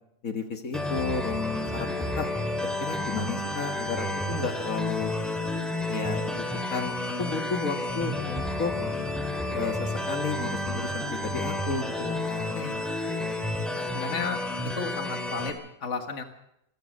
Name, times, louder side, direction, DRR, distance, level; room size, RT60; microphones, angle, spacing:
voice 1, 0.2-2.3 2.6-5.1 5.9-8.7 9.5-12.5, left 4 dB, 80° left, 5 dB, 2.1 m, -33 dB
sound 1, 0.7-15.5, left 1 dB, ahead, 3.0 m, -31 dB
voice 2, 12.5-13.3 13.8-14.4 14.8-16.2, left 5 dB, 60° left, 6 dB, 2.0 m, -35 dB
28.0 x 15.0 x 6.5 m, 0.80 s
omnidirectional pair, 1.4 m